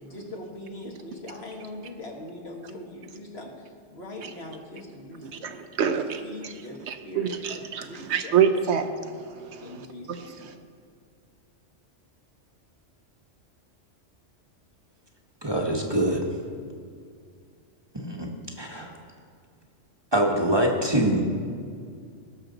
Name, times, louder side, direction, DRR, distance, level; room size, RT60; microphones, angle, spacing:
voice 1, 0.0-5.6 5.8-8.4 9.6-10.6, left 1 dB, 55° left, 0 dB, 1.6 m, -41 dB
voice 2, 5.3-6.5 6.9-9.8 10.1-10.2, right 7 dB, 70° right, 8 dB, 0.9 m, -27 dB
voice 3, 15.4-16.2 17.9-18.3 18.6-19.0 20.1-21.2, right 1 dB, 25° right, 0 dB, 1.0 m, -24 dB
19.0 x 6.3 x 3.9 m, 2.2 s
omnidirectional pair, 1.3 m